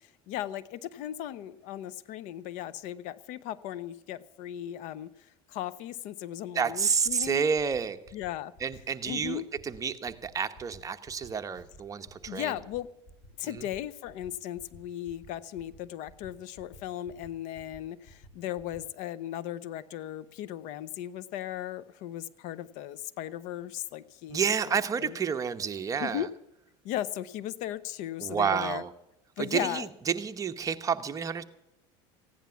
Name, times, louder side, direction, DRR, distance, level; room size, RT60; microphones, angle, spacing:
voice 1, 0.0-5.1 5.5-7.5 8.1-8.5 9.1-9.5 12.3-12.9 13.4-25.2 26.0-26.3 26.8-28.8 29.4-29.9, left 12 dB, 65° left, 18 dB, 0.8 m, -37 dB
voice 2, 6.5-8.0 8.6-12.5 13.4-13.7 24.3-26.3 28.2-28.9 29.4-31.4, right 6 dB, 25° right, 7 dB, 1.0 m, -30 dB
sound 1, 6.8-6.9 7.0-7.3 7.5-7.8 8.0-8.3 8.5-8.8 9.0-9.3 9.5-9.8 10.0-10.3 10.5-10.8 11.0-11.3 11.5-11.8 12.0-12.3 12.5-12.8 13.0-13.3 13.5-13.8 14.0-14.3 14.5-14.8 15.0-15.3 15.5-15.8 16.0-16.3 16.5-16.8 17.0-17.3 17.5-17.8 18.0-18.3 18.5-18.8, left 1 dB, 40° left, 5.5 m, -52 dB
15.5 x 10.5 x 7.0 m, 0.87 s
supercardioid pair, 125°, 14 cm